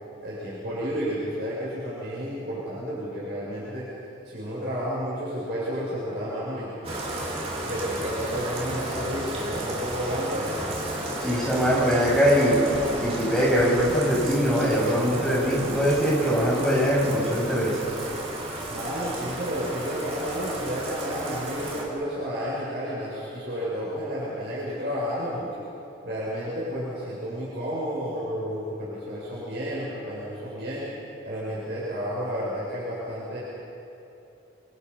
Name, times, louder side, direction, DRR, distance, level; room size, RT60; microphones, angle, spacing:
voice 1, 0.2-3.8 4.2-6.8 7.6-10.6 18.7-25.6 26.0-30.8 31.2-33.4, equal, 60° right, -8 dB, 7.5 m, -31 dB
Bathtub (filling or washing), 6.8-21.8, right 1 dB, 30° right, 4.6 m, -33 dB
voice 2, 11.2-12.6 13.0-17.8, equal, 5° left, -5 dB, 7.4 m, -22 dB
27.5 x 26.5 x 5.8 m, 2.9 s
head